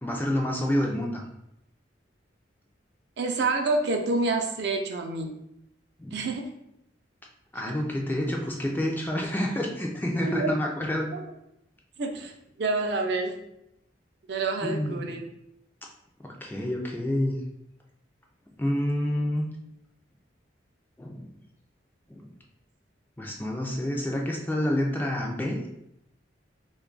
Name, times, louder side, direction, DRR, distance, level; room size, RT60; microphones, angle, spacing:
voice 1, 0.0-1.2 6.0-6.2 7.5-11.1 14.6-15.1 16.2-17.4 18.6-19.5 21.0-21.3 22.1-22.3 23.2-25.6, left 1 dB, 10° left, 0 dB, 0.3 m, -28 dB
voice 2, 3.2-5.3 6.1-6.5 10.2-10.5 11.1-11.2 12.0-12.3 12.6-13.3 14.3-15.3, right 3 dB, 60° right, 3 dB, 0.4 m, -27 dB
3.1 x 2.3 x 3.7 m, 0.80 s
head